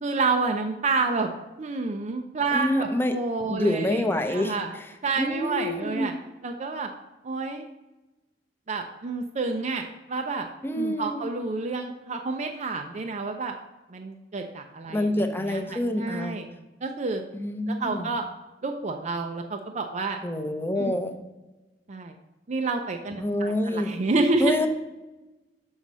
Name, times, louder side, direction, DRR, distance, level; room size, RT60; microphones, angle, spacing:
voice 1, 0.0-1.3 1.6-4.7 5.0-6.1 6.4-6.9 7.2-7.7 8.7-10.5 10.7-13.5 13.9-16.5 16.8-17.2 17.7-18.3 18.6-20.2 20.8-20.9 21.9-22.2 22.5-24.7, right 3 dB, 40° right, 4 dB, 0.5 m, -29 dB
voice 2, 2.5-3.1 3.5-4.9 5.2-6.1 10.6-11.3 14.9-16.4 17.3-18.1 20.2-21.2 23.2-23.9 24.4-24.7, left 1 dB, 10° left, 6 dB, 0.7 m, -27 dB
6.4 x 5.5 x 6.1 m, 1.1 s
head